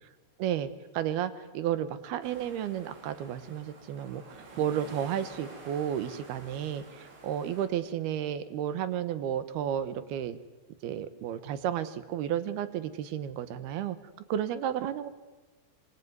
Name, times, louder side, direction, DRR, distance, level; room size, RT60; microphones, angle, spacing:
voice 1, 0.4-10.4 10.8-14.0 14.3-15.1, right 10 dB, 70° right, 13 dB, 2.9 m, -32 dB
sound 1, 2.2-7.7, right 3 dB, 90° right, 7.9 m, -49 dB
25.5 x 24.5 x 9.5 m, 1.2 s
omnidirectional pair, 5.2 m